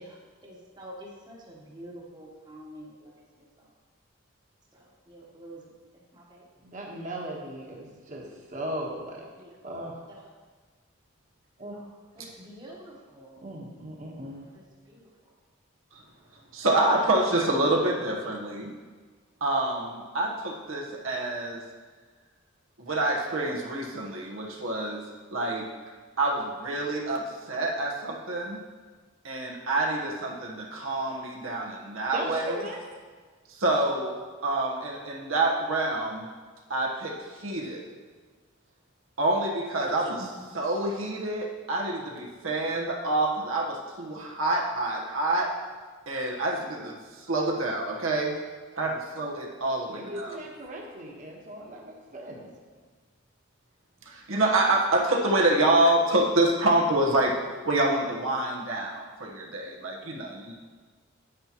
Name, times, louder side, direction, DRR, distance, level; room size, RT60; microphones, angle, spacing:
voice 1, 0.0-3.2 3.6-3.7 4.7-5.6 5.9-6.5 9.3-9.5 10.1-10.2 12.2-13.4 14.5-15.0 54.3-54.8, right 1 dB, 20° right, -3 dB, 1.2 m, -47 dB
voice 2, 6.6-9.3 9.6-10.0 11.6-11.9 13.4-14.4 32.1-32.8 49.9-52.5, right 1 dB, 40° right, -1 dB, 1.2 m, -38 dB
voice 3, 16.5-18.7 19.4-21.6 22.8-25.0 25.3-25.7 26.2-28.6 29.2-32.6 33.6-34.1 34.4-36.3 36.7-37.1 37.4-37.8 39.2-45.5 46.1-48.3 48.8-50.4 54.1-57.3 57.6-60.5, right 2 dB, 90° right, -1 dB, 1.2 m, -27 dB
9.6 x 8.8 x 3.0 m, 1.4 s
head